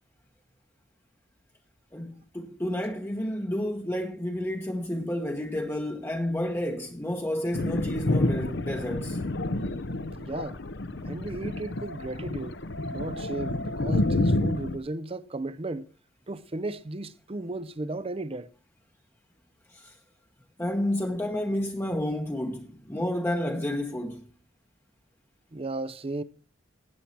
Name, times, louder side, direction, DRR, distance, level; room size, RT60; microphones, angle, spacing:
voice 1, 1.9-9.2 19.7-19.9 20.6-24.2, left 1 dB, 15° left, 1.0 m, -30 dB
Thunder, 7.5-14.8, left 2 dB, 65° left, 0.9 m, -29 dB
voice 2, 10.1-10.6 11.0-12.6 12.9-15.9 16.3-18.5 25.5-26.2, right 2 dB, 30° right, 0.6 m, -35 dB
16.0 x 8.9 x 4.5 m
head